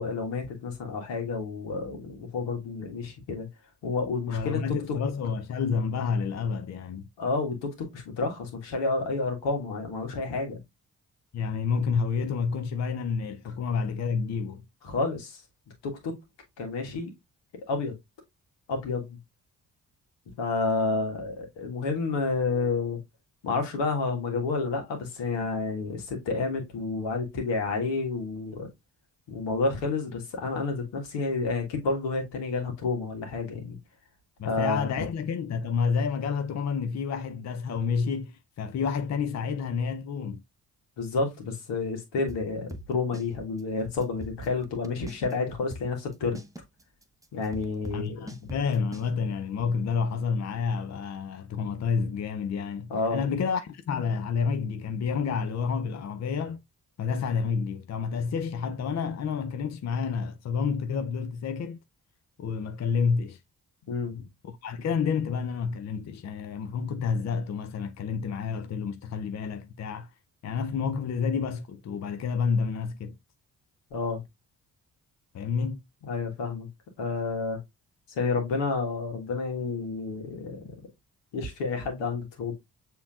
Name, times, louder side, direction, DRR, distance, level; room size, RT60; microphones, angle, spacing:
voice 1, 0.0-3.5 3.8-4.6 7.2-10.6 14.8-15.4 15.8-16.1 16.6-17.1 17.7-17.9 18.7-19.2 20.4-23.0 23.4-28.7 29.3-33.8 34.4-35.0 41.0-46.4 47.3-48.3 52.9-53.2 63.9-64.2 73.9-74.2 76.0-76.7 77.0-77.6 78.1-80.7 81.3-82.5, left 3 dB, 75° left, 1.6 m, -30 dB
voice 2, 4.3-7.0 11.3-14.6 34.4-40.4 47.9-56.6 57.0-61.8 62.4-63.4 64.4-70.1 70.4-73.2 75.3-75.8, left 5 dB, 40° left, 0.6 m, -29 dB
sound 1, 42.3-43.3 43.6-43.7 44.0-45.3 45.7-49.1, equal, 10° right, 0.8 m, -41 dB
6.9 x 3.0 x 2.4 m
hypercardioid pair, 40°, 43 cm